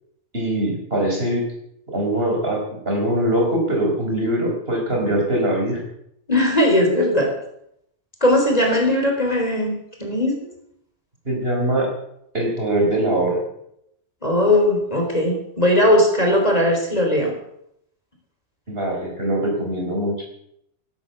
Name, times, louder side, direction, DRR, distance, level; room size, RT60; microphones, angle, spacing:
voice 1, 0.3-1.4 1.9-5.8 11.2-11.9 12.3-13.4 18.7-20.2, right 1 dB, 55° right, 0 dB, 5.0 m, -22 dB
voice 2, 6.3-7.3 8.2-10.4 14.2-17.3, left 1 dB, 35° left, 2 dB, 3.8 m, -18 dB
16.5 x 11.5 x 6.7 m, 0.75 s
omnidirectional pair, 1.2 m